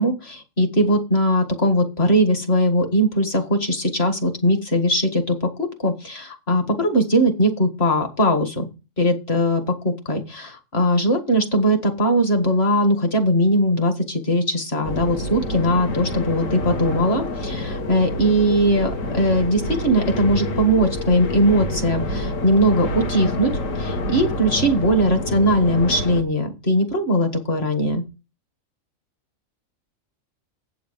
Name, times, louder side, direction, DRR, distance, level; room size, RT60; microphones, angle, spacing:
voice 1, 0.0-8.7 9.0-23.5 23.8-28.0, equal, 45° left, 7 dB, 2.0 m, -20 dB
sound 1, 14.8-26.2, left 1 dB, 65° left, 1.7 m, -27 dB
8.3 x 7.1 x 5.2 m, 0.29 s
omnidirectional pair, 1.5 m